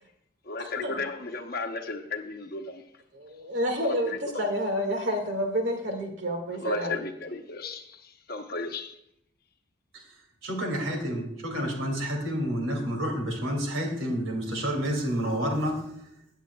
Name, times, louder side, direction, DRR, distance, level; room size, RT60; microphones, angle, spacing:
voice 1, 0.4-2.8 3.8-4.5 6.5-8.9, left 3 dB, 50° left, 5 dB, 0.9 m, -35 dB
voice 2, 3.1-6.9, equal, 65° right, 3 dB, 2.0 m, -29 dB
voice 3, 10.4-15.9, equal, 80° right, 2 dB, 2.5 m, -29 dB
17.0 x 8.3 x 2.3 m, 0.79 s
head